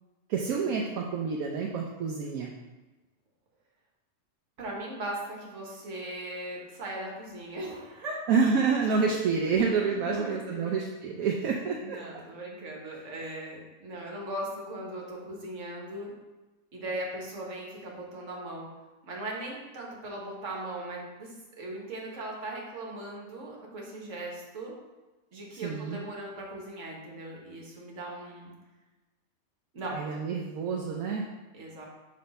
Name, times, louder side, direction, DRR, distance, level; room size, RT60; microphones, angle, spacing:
voice 1, 0.3-2.5 8.3-12.0 25.5-26.0 29.9-31.3, right 5 dB, 80° right, -1 dB, 1.1 m, -28 dB
voice 2, 4.6-8.2 9.8-10.7 11.8-16.1 16.7-18.7 19.0-24.7 25.3-28.5 29.7-30.0 31.5-31.9, right 1 dB, 60° right, -2 dB, 1.5 m, -39 dB
5.9 x 3.2 x 5.2 m, 1.2 s
omnidirectional pair, 1.5 m